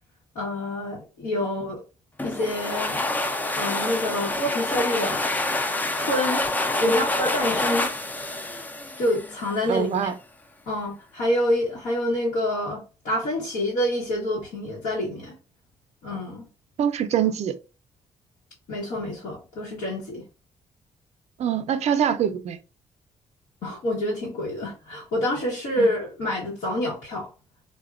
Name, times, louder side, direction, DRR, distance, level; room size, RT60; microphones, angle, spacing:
voice 1, 0.3-1.8 2.2-3.1 3.6-5.3 5.9-6.4 6.8-7.9 9.0-10.1 10.7-15.4 16.0-16.5 18.7-20.2 23.6-27.3, left 1 dB, 90° left, 0.9 m, -27 dB
sound 1, 2.2-9.7, left 2 dB, 15° left, 0.3 m, -27 dB
voice 2, 9.7-10.2 16.8-17.6 21.4-22.6 25.8-25.9, right 8 dB, 60° right, 0.4 m, -24 dB
4.0 x 2.1 x 2.4 m
cardioid pair, 120°, 13 cm